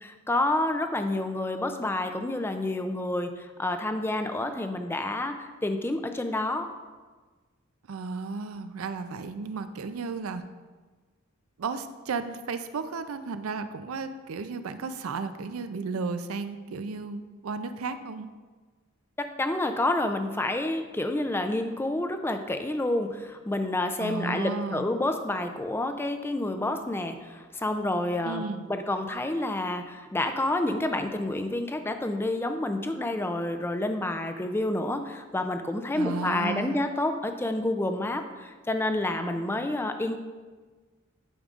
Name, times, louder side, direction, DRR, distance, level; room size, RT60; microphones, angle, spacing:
voice 1, 0.0-6.7 19.2-40.2, left 1 dB, 10° left, 6 dB, 0.4 m, -29 dB
voice 2, 7.9-10.4 11.6-18.3 24.0-24.9 28.2-28.7 35.9-36.8, right 4 dB, 85° right, 10 dB, 0.5 m, -34 dB
11.0 x 5.2 x 2.4 m, 1.4 s
head